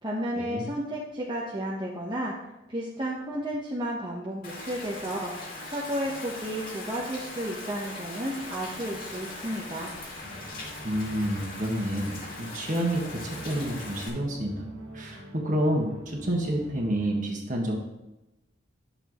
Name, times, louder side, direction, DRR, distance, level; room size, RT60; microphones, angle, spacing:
voice 1, 0.0-2.3 2.7-5.3 5.7-9.9, right 1 dB, 25° right, -5 dB, 1.0 m, -32 dB
Rain, 4.4-14.1, left 2 dB, 45° left, 2.5 m, -40 dB
sound 1, 10.2-17.2, right 1 dB, 80° right, 1.6 m, -45 dB
voice 2, 10.8-14.6 14.9-17.8, right 1 dB, 40° right, 0 dB, 1.5 m, -29 dB
10.5 x 6.8 x 3.1 m, 0.98 s
head